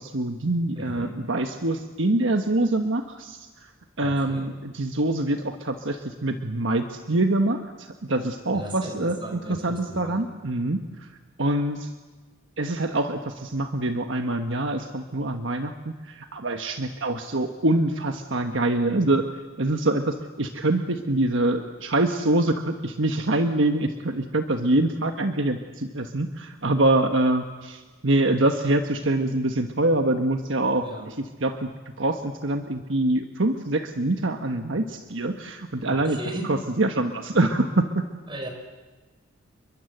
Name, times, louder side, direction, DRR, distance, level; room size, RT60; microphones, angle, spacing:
voice 1, 0.0-3.5 4.0-11.1 11.4-11.9 12.6-19.2 19.6-31.1 31.4-31.7 32.0-36.2 36.5-38.0, right 2 dB, 60° right, 6 dB, 1.4 m, -25 dB
voice 2, 0.7-1.2 4.0-4.5 8.5-10.2 30.8-31.1 35.9-36.5 38.3-38.5, right 1 dB, 25° right, 5 dB, 4.8 m, -36 dB
29.5 x 22.5 x 8.0 m, 1.3 s
head